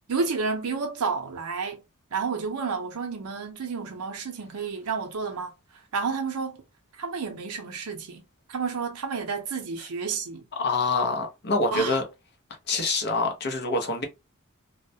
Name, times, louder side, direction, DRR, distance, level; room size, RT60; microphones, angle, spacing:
voice 1, 0.1-1.8 2.1-5.5 5.9-6.6 7.0-8.2 8.5-10.5 11.7-12.0, right 5 dB, 80° right, 0.6 m, -30 dB
voice 2, 10.5-12.0 12.7-14.1, left 3 dB, 50° left, 0.7 m, -25 dB
2.2 x 2.1 x 2.6 m
head